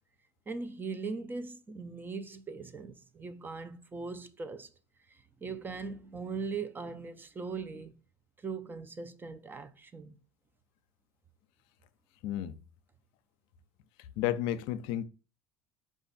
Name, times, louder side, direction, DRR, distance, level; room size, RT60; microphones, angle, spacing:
voice 1, 0.5-4.7 5.1-8.0 8.4-10.2, right 4 dB, 20° right, 0.5 m, -40 dB
voice 2, 12.2-12.6 14.2-15.0, left 12 dB, 70° left, 0.4 m, -32 dB
4.9 x 2.5 x 4.0 m
supercardioid pair, 90°, 9 cm